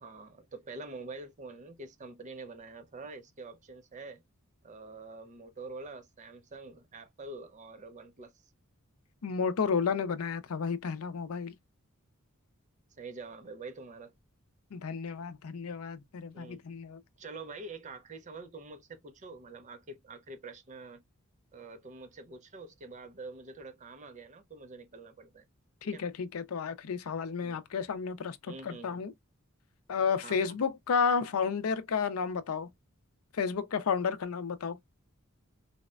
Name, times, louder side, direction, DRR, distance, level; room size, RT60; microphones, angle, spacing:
voice 1, 0.0-4.2 4.6-8.3 13.0-14.1 16.3-16.6 17.2-21.0 21.5-25.4 25.9-26.0 27.4-27.6 28.5-29.0 30.2-30.5, right 3 dB, 35° right, 0.5 m, -46 dB
voice 2, 9.2-11.5 14.7-17.0 25.8-29.1 29.9-32.7 33.3-34.8, left 6 dB, 85° left, 0.5 m, -32 dB
4.0 x 2.1 x 2.3 m
head